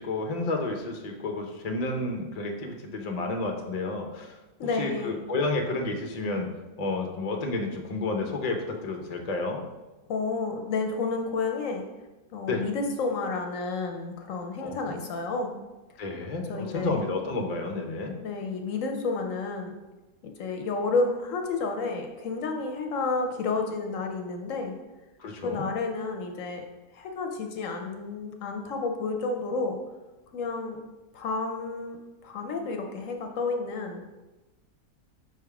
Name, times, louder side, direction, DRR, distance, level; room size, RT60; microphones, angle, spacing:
voice 1, 0.0-4.3 4.8-6.5 6.8-9.6 12.5-12.6 14.6-15.0 16.0-18.1 25.2-25.7, left 2 dB, 45° left, 3 dB, 0.5 m, -31 dB
voice 2, 4.6-5.2 10.1-11.8 12.3-15.6 16.5-17.0 18.2-19.8 20.2-24.7 25.4-26.6 26.9-29.8 30.3-30.8 31.1-32.0 32.2-34.0, left 3 dB, 65° left, 3 dB, 0.9 m, -30 dB
5.8 x 3.5 x 4.7 m, 1.1 s
omnidirectional pair, 1.7 m